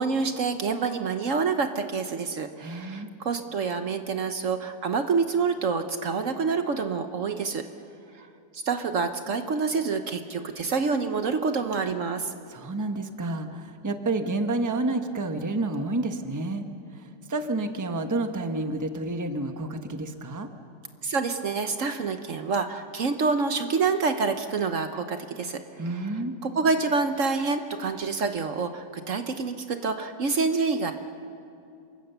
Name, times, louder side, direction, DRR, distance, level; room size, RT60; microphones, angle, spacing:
voice 1, 0.0-7.6 8.2-8.3 8.5-12.3 21.0-25.6 25.8-30.9, right 4 dB, 55° right, 7 dB, 1.2 m, -27 dB
voice 2, 2.6-3.1 12.5-16.7 16.9-20.5 25.8-26.4, right 2 dB, 15° right, 6 dB, 1.0 m, -29 dB
27.5 x 23.5 x 6.8 m, 2.6 s
omnidirectional pair, 1.7 m